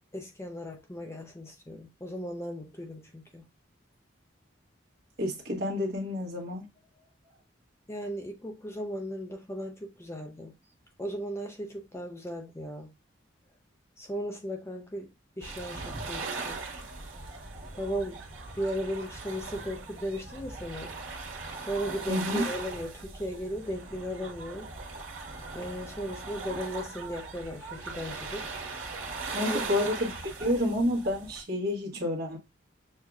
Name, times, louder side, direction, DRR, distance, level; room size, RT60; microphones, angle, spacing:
voice 1, 0.0-3.5 7.9-10.5 11.0-12.9 14.0-16.6 17.8-18.2 18.5-20.9 21.5-24.7 25.5-28.5 29.4-29.7, equal, 15° left, 0.6 m, -36 dB
voice 2, 5.2-6.7 22.1-22.4 29.3-32.4, left 1 dB, 50° right, 1.3 m, -29 dB
sound 1, 15.4-31.4, right 3 dB, 85° right, 1.4 m, -39 dB
6.4 x 2.7 x 2.3 m
head